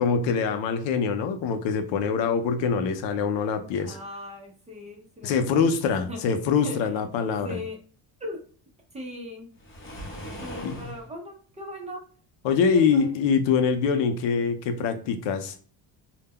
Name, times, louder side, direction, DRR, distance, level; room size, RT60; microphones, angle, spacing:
voice 1, 0.0-4.0 5.2-7.6 10.6-10.8 12.4-15.5, left 6 dB, 75° left, 8 dB, 0.6 m, -24 dB
voice 2, 3.8-5.4 6.1-6.8 7.4-7.8 8.2-8.4 8.9-9.5 10.4-12.0 12.9-13.1, left 1 dB, 15° right, 1 dB, 0.5 m, -38 dB
Waves surf, 9.6-11.1, equal, 30° left, 0.8 m, -39 dB
2.2 x 2.1 x 3.4 m, 0.42 s
cardioid pair, 120°, 44 cm